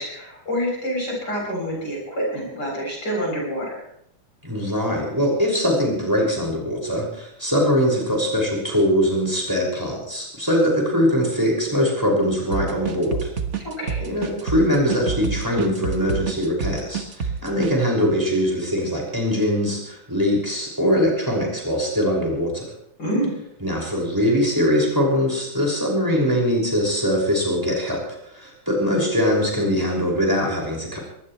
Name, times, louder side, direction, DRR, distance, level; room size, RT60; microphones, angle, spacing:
voice 1, 0.0-3.8 13.6-14.1 23.0-23.3, equal, 30° left, -2 dB, 8.3 m, -27 dB
voice 2, 4.4-13.3 14.1-22.6 23.6-28.0 28.3-31.0, equal, 5° right, -1 dB, 5.7 m, -22 dB
sound 1, 12.5-17.8, right 6 dB, 55° right, 0.7 m, -28 dB
23.0 x 19.5 x 3.3 m, 0.73 s
omnidirectional pair, 3.5 m